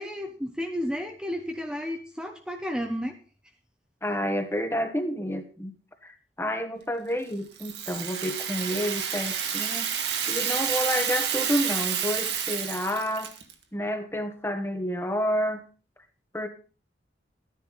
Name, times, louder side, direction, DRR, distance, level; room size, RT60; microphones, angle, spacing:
voice 1, 0.0-3.2, equal, 5° right, 3 dB, 0.9 m, -32 dB
voice 2, 4.0-5.7 6.0-9.9 10.3-13.3 13.7-15.6 16.3-16.5, equal, 15° left, 7 dB, 1.2 m, -29 dB
Rattle (instrument), 7.6-13.5, right 8 dB, 65° right, 1.8 m, -29 dB
14.0 x 10.5 x 4.0 m, 0.38 s
head